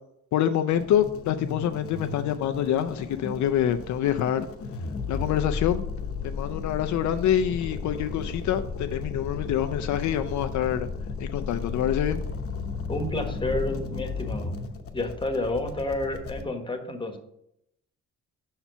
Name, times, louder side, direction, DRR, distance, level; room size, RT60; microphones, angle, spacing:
voice 1, 0.3-4.5 5.1-5.8 6.2-10.9 11.2-12.2, left 10 dB, 70° left, 7 dB, 0.5 m, -26 dB
sound 1, 0.7-16.4, left 4 dB, 50° left, 0.9 m, -34 dB
voice 2, 12.9-14.6 14.9-17.2, left 2 dB, 15° left, 5 dB, 1.2 m, -30 dB
5.7 x 4.4 x 5.6 m, 0.77 s
cardioid pair, 90°, 30 cm